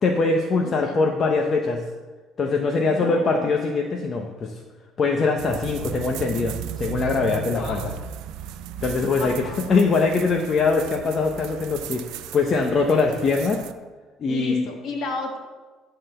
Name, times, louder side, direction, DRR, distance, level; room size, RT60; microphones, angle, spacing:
voice 1, 0.0-1.8 2.4-4.5 5.0-7.9 8.8-9.3 9.7-13.6 14.2-14.7, left 4 dB, 35° left, 1 dB, 0.9 m, -22 dB
voice 2, 0.6-1.0 2.8-3.5 7.4-7.8 9.2-9.8 14.3-15.4, left 4 dB, 55° left, 2 dB, 1.8 m, -33 dB
sound 1, 5.4-13.7, right 9 dB, 80° right, 0.5 m, -36 dB
11.0 x 3.9 x 6.7 m, 1.3 s
cardioid pair, 115°, 0 cm